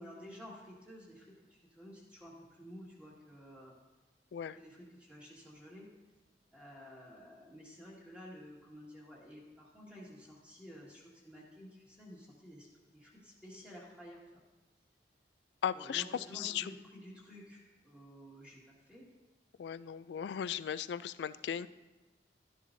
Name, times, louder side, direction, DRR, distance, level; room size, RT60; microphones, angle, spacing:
voice 1, 0.0-3.7 4.6-5.9 6.5-14.4 15.7-19.1, equal, 5° right, -5 dB, 1.9 m, -52 dB
voice 2, 15.6-16.0 16.3-16.7 19.6-21.7, left 9 dB, 80° left, 16 dB, 0.3 m, -37 dB
12.5 x 10.0 x 2.6 m, 1.1 s
head